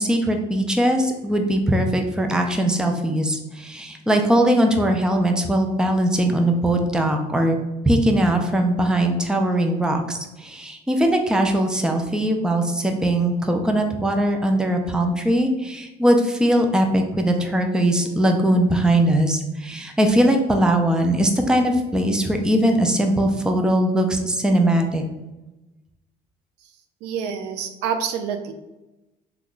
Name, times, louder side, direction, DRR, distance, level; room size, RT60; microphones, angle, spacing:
voice 1, 0.0-7.6 7.9-25.0, right 1 dB, 5° right, 3 dB, 0.4 m, -20 dB
voice 2, 27.0-28.5, right 7 dB, 85° right, 7 dB, 0.4 m, -27 dB
3.0 x 2.3 x 3.7 m, 1.0 s
cardioid pair, 110°, 17 cm